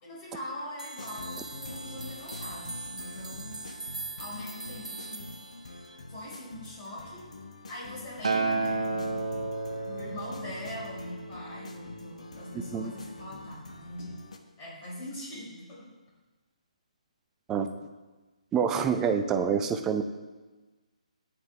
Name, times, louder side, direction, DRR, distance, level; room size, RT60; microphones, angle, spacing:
voice 1, 0.0-3.6 4.2-5.3 6.1-7.2 7.7-9.3 9.8-14.2 14.6-15.8, left 1 dB, 25° left, -5 dB, 4.2 m, -42 dB
sound 1, 0.8-6.0, right 3 dB, 75° right, 0.6 m, -42 dB
sound 2, 1.0-14.4, left 2 dB, 60° left, 1.2 m, -46 dB
Acoustic guitar, 8.2-12.5 13.4-13.5, right 3 dB, 60° right, 1.3 m, -32 dB
voice 2, 18.5-20.0, right 7 dB, 10° right, 7 dB, 0.5 m, -26 dB
14.5 x 9.6 x 3.2 m, 1.2 s
figure-of-eight pair, 140°, 4 cm